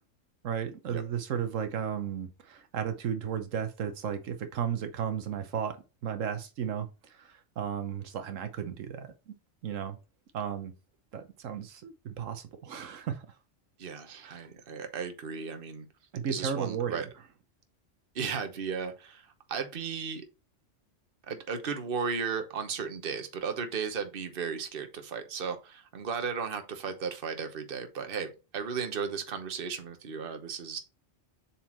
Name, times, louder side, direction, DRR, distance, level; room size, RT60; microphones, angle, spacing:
voice 1, 0.4-5.7 6.0-6.9 7.6-9.1 9.6-10.0 10.3-10.7 11.1-13.2 14.2-14.4 16.1-17.0, right 8 dB, 80° right, 1.2 m, -34 dB
voice 2, 13.8-15.9 16.3-17.1 18.1-20.3 21.3-30.8, right 6 dB, 50° right, 1.2 m, -35 dB
7.2 x 4.3 x 3.0 m
omnidirectional pair, 1.3 m